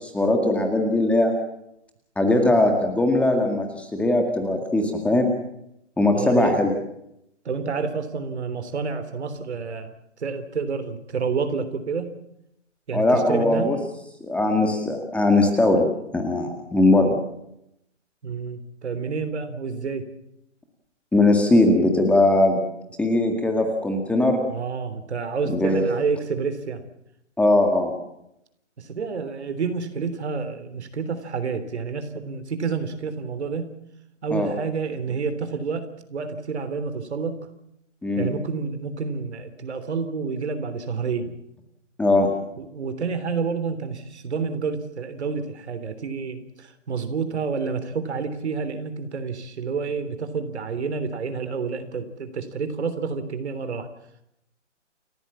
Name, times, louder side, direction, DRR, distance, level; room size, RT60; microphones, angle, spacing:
voice 1, 0.0-1.3 2.2-5.3 6.0-6.7 12.9-13.8 14.2-15.9 16.1-17.2 21.1-22.6 23.0-24.4 25.5-25.9 27.4-27.9 34.3-34.5 38.0-38.3 42.0-42.3, left 2 dB, 5° left, 4 dB, 1.9 m, -20 dB
voice 2, 6.1-6.6 7.5-9.9 10.2-12.1 12.9-13.7 18.2-20.1 24.5-26.8 28.8-33.7 34.2-37.4 38.2-41.3 42.6-53.9, right 5 dB, 60° right, 10 dB, 3.4 m, -29 dB
29.5 x 14.5 x 7.4 m, 0.80 s
hypercardioid pair, 145°, 37 cm